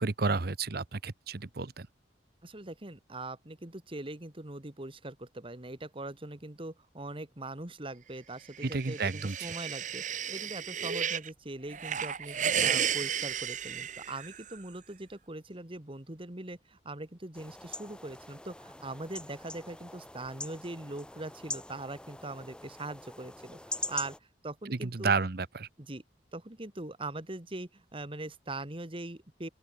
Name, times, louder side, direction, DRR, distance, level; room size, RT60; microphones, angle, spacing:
voice 1, 0.0-1.9 8.6-9.3 24.8-25.7, right 4 dB, 60° right, 0.9 m, -31 dB
voice 2, 2.4-24.2 24.4-25.1 25.8-26.0 26.3-29.5, right 2 dB, 30° right, 1.9 m, -41 dB
sound 1, 8.6-11.3 11.7-14.6, right 8 dB, 45° right, 1.7 m, -33 dB
sound 2, 17.3-24.2, left 2 dB, 5° left, 0.8 m, -43 dB
open air
head